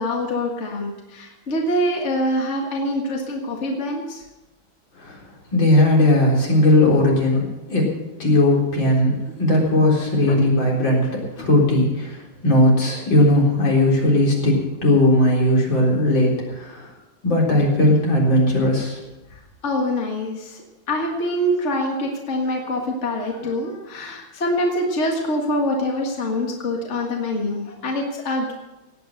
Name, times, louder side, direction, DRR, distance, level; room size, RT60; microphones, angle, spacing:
voice 1, 0.0-4.2 10.3-10.4 11.4-11.5 19.6-28.5, left 1 dB, 35° left, 0 dB, 2.0 m, -25 dB
voice 2, 5.5-9.1 9.4-16.9 17.2-19.0, left 1 dB, 70° left, -2 dB, 4.8 m, -18 dB
17.5 x 9.4 x 6.5 m, 1.0 s
omnidirectional pair, 2.1 m